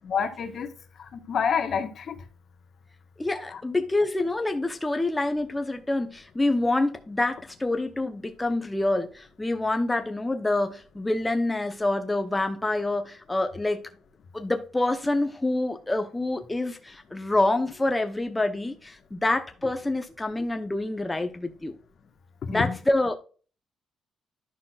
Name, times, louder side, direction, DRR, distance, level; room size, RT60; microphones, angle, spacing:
voice 1, 0.0-0.7 1.0-2.2 3.5-3.6 22.5-22.8, left 6 dB, 60° left, 1.3 m, -28 dB
voice 2, 3.2-13.9 14.3-21.8 22.5-23.2, left 2 dB, 15° left, 0.8 m, -27 dB
11.0 x 5.8 x 2.4 m
cardioid pair, 90°, 0 cm